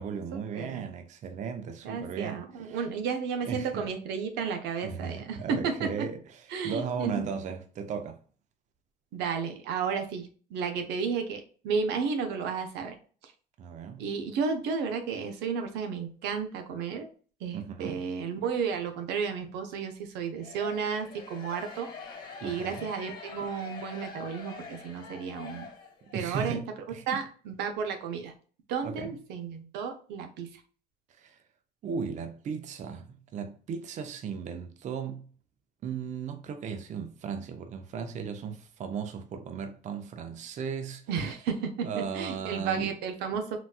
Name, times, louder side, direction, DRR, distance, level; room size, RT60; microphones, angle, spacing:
voice 1, 0.0-2.8 3.4-3.9 4.8-8.2 13.6-14.1 17.5-18.0 22.4-22.9 26.1-27.3 28.8-29.2 31.2-31.4 31.8-35.3 35.8-41.0 41.8-43.0, right 6 dB, 45° right, 0.5 m, -36 dB
voice 2, 0.5-0.8 1.8-6.1 6.5-7.2 9.1-13.0 14.0-17.1 17.4-21.9 22.4-25.7 26.1-26.6 27.1-28.3 28.7-30.5 41.1-43.6, right 6 dB, 85° right, 0.7 m, -32 dB
sound 1, 20.4-26.3, left 5 dB, 55° left, 1.3 m, -45 dB
4.0 x 2.3 x 2.3 m
cardioid pair, 110°, 17 cm